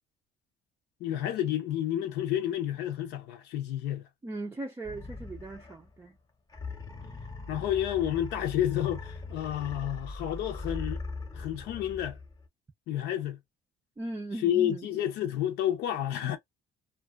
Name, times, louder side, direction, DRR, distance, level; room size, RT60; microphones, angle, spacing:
voice 1, 1.0-4.1 7.5-11.0 11.3-12.2 12.9-13.4 14.3-16.4, left 11 dB, 80° left, 0.7 m, -30 dB
voice 2, 4.2-6.1 14.0-14.9, right 2 dB, 15° right, 0.4 m, -38 dB
sound 1, 4.8-6.0 6.5-12.5, left 3 dB, 20° left, 0.8 m, -40 dB
2.3 x 2.3 x 2.3 m
cardioid pair, 110°, 17 cm